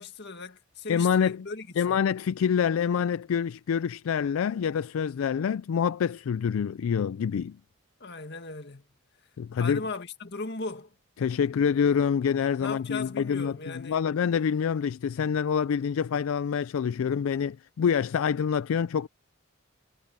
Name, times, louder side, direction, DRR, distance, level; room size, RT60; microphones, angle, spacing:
voice 1, 0.0-2.0 8.0-8.9 9.6-10.9 12.6-14.3, left 3 dB, 55° left, 1.9 m, -38 dB
voice 2, 0.9-1.4 1.8-7.6 9.4-9.8 11.2-19.1, left 7 dB, 70° left, 0.3 m, -26 dB
head